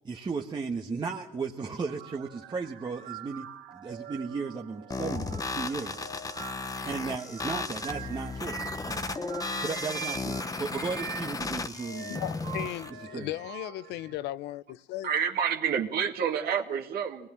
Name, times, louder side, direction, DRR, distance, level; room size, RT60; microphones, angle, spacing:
voice 1, 0.0-6.0 6.5-9.1 9.6-12.2 12.9-13.3, right 4 dB, 25° right, 1.5 m, -35 dB
sound 1, 1.8-14.2, right 9 dB, 85° right, 1.8 m, -44 dB
sound 2, 4.9-12.9, left 3 dB, 20° left, 1.1 m, -35 dB
voice 2, 12.1-15.1, left 15 dB, 85° left, 0.8 m, -36 dB
voice 3, 15.0-17.3, right 7 dB, 65° right, 2.2 m, -28 dB
24.0 x 19.5 x 7.4 m
cardioid pair, 110°, 17 cm